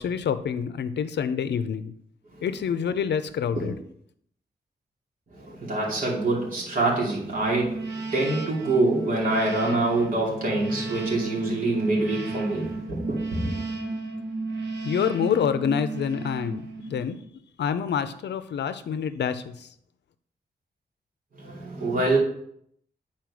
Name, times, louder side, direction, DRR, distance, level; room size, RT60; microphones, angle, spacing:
voice 1, 0.0-1.9 2.4-3.8 14.8-17.2 17.6-19.7, left 7 dB, 85° left, 0.5 m, -27 dB
voice 2, 5.3-13.6 21.3-22.2, right 2 dB, 55° right, 2.7 m, -26 dB
sound 1, 7.3-17.2, right 3 dB, 90° right, 1.1 m, -34 dB
9.3 x 4.4 x 4.8 m
wide cardioid pair, 150°, 17 cm